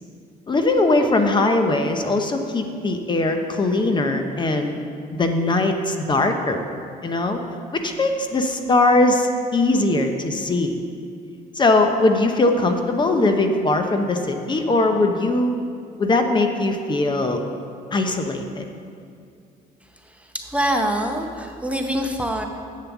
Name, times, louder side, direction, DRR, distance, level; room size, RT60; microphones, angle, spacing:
voice 1, 0.5-4.8 5.1-6.6 7.0-7.4 7.7-10.8 11.5-15.6 16.0-17.4 17.9-18.7, left 2 dB, 25° left, 5 dB, 0.7 m, -20 dB
voice 2, 20.1-22.4, right 1 dB, 5° right, 3 dB, 0.7 m, -25 dB
7.6 x 6.9 x 7.1 m, 2.3 s
cardioid pair, 110°, 17 cm